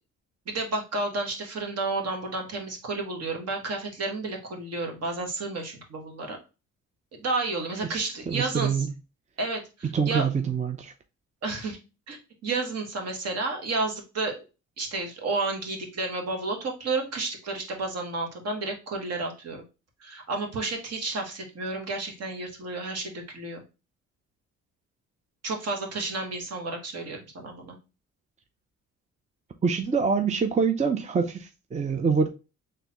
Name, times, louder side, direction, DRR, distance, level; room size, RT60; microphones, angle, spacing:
voice 1, 0.5-6.4 7.1-8.9 9.4-10.2 11.4-11.8 12.1-14.4 14.8-19.6 20.0-23.6 25.4-27.8, right 3 dB, 55° right, 1.5 m, -31 dB
voice 2, 7.9-8.9 9.9-10.9 29.6-32.3, right 5 dB, 25° right, 0.5 m, -25 dB
4.0 x 3.3 x 2.9 m
cardioid pair, 90°, 30 cm